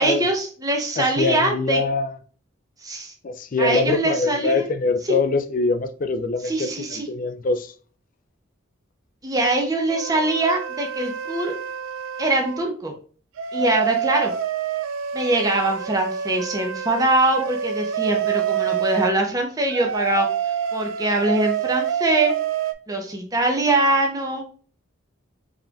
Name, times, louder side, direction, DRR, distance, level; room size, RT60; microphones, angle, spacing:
voice 1, 0.0-1.8 2.8-3.1 3.6-4.7 6.4-7.1 9.2-11.5 12.2-12.9 13.5-14.3 15.1-20.3 20.7-22.3 22.9-24.4, right 2 dB, 15° right, 0.7 m, -23 dB
voice 2, 1.0-2.2 3.2-7.7, left 3 dB, 40° left, 0.4 m, -24 dB
sound 1, 9.9-12.7 13.4-19.1 19.7-22.7, right 8 dB, 75° right, 0.4 m, -27 dB
4.3 x 3.6 x 2.3 m
head